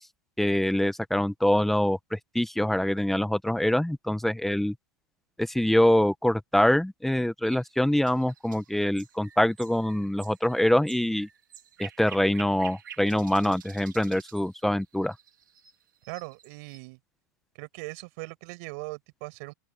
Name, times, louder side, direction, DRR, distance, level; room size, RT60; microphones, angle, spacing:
voice 1, 0.4-4.7 5.5-11.3 11.8-15.1, left 1 dB, ahead, 1.3 m, -24 dB
sound 1, 7.4-16.8, right 9 dB, 85° right, 4.0 m, -49 dB
voice 2, 16.1-17.0 17.6-19.5, right 30 dB, 50° right, 6.5 m, -40 dB
open air
hypercardioid pair, 115°, 10 cm